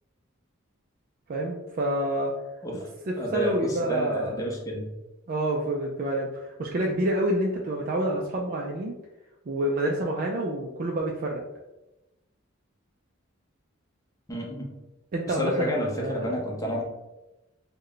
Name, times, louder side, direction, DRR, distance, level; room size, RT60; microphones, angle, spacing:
voice 1, 1.3-2.3 3.1-4.5 5.3-8.9 9.5-11.4 15.1-16.4, right 1 dB, 45° right, -1 dB, 0.4 m, -28 dB
voice 2, 3.1-4.9 14.3-14.7 15.3-16.8, equal, 15° left, -2 dB, 0.7 m, -30 dB
3.2 x 2.2 x 3.8 m, 1.0 s
head